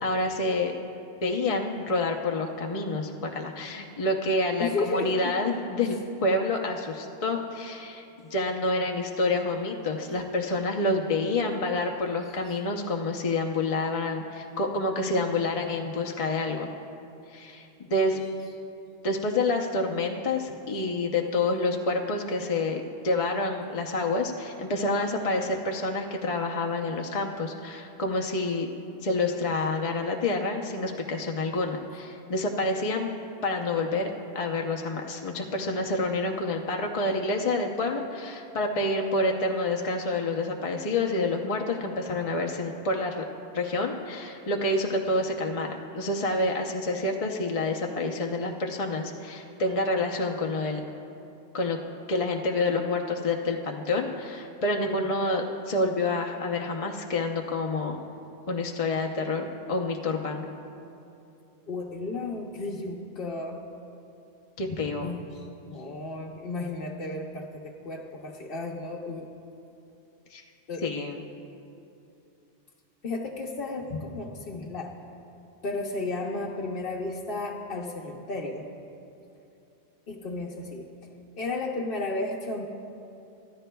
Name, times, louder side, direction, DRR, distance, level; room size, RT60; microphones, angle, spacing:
voice 1, 0.0-0.7 1.2-8.0 8.3-16.7 17.3-18.2 19.0-28.7 29.0-33.1 33.4-43.2 43.5-50.8 51.5-51.8 52.1-58.0 58.5-60.5 64.6-65.1 70.3-70.4 70.8-71.2 73.9-74.0, left 2 dB, 35° left, 1 dB, 0.7 m, -28 dB
voice 2, 4.6-5.3 10.1-10.2 12.3-12.6 61.7-63.6 65.0-69.3 70.7-70.9 73.0-74.9 75.6-78.7 80.1-80.9 81.3-82.7, left 3 dB, 55° left, -2 dB, 1.0 m, -33 dB
24.0 x 13.0 x 2.3 m, 2.8 s
omnidirectional pair, 1.2 m